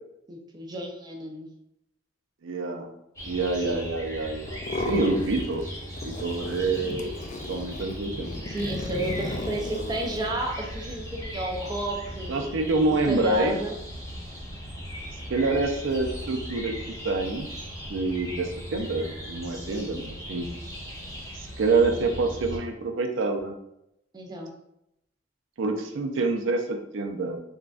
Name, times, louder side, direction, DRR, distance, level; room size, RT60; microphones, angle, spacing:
voice 1, 0.3-1.5 3.6-3.8 8.4-13.7 19.5-20.0 24.1-24.5, right 1 dB, 20° right, 1 dB, 0.5 m, -32 dB
voice 2, 2.4-2.9 3.2-7.1 7.5-8.3 12.3-13.6 15.3-16.7 17.0-20.5 21.3-23.6 25.6-27.4, right 3 dB, 85° right, 4 dB, 0.5 m, -27 dB
sound 1, 3.2-22.6, equal, 15° left, 0.8 m, -38 dB
sound 2, 4.5-5.7 6.0-10.3, left 2 dB, 40° left, 0.3 m, -35 dB
3.7 x 2.2 x 2.4 m, 0.81 s
head